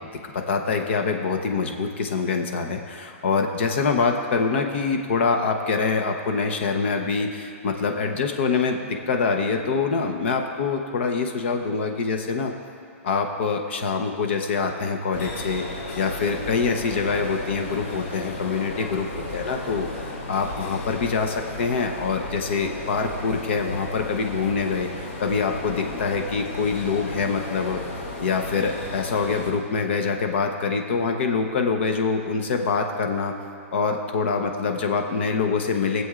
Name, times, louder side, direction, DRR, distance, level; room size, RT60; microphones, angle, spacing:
voice 1, 0.2-12.5 13.0-19.9 20.3-27.8 28.2-33.3 33.7-36.0, left 5 dB, 55° left, 4 dB, 0.9 m, -25 dB
sound 1, 15.1-29.5, left 2 dB, 75° left, 2.9 m, -34 dB
23.0 x 7.8 x 2.5 m, 2.5 s
hypercardioid pair, 175°, 7 cm